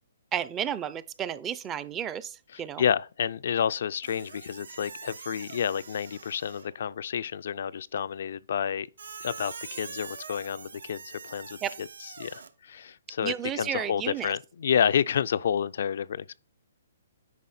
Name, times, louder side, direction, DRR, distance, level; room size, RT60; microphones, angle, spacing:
voice 1, 0.3-2.8 11.6-11.7 13.2-14.3, right 9 dB, 15° right, 0.5 m, -32 dB
voice 2, 2.5-8.9 9.2-16.4, left 8 dB, 60° left, 0.3 m, -30 dB
Squeak, 4.0-6.8 9.0-12.5, right 5 dB, 80° right, 1.0 m, -44 dB
9.3 x 4.8 x 4.2 m
hypercardioid pair, 150°, 0 cm